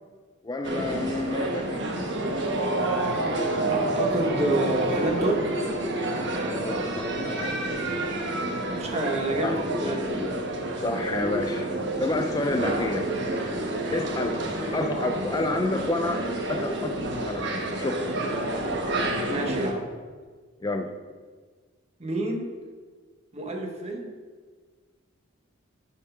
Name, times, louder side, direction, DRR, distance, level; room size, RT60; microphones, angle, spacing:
voice 1, 0.4-1.8 6.4-7.6 9.4-9.5 10.8-11.7 12.0-13.1 13.9-14.4 14.7-16.2 16.5-18.2 18.4-18.5 20.6-20.9, left 2 dB, 20° left, 5 dB, 0.3 m, -29 dB
sound 1, 0.6-19.7, right 1 dB, 60° right, 1.1 m, -29 dB
voice 2, 3.7-5.4 8.7-10.1 19.3-19.9 22.0-22.5 23.3-24.1, right 2 dB, 30° right, 2 dB, 1.1 m, -28 dB
8.2 x 4.5 x 5.5 m, 1.5 s
head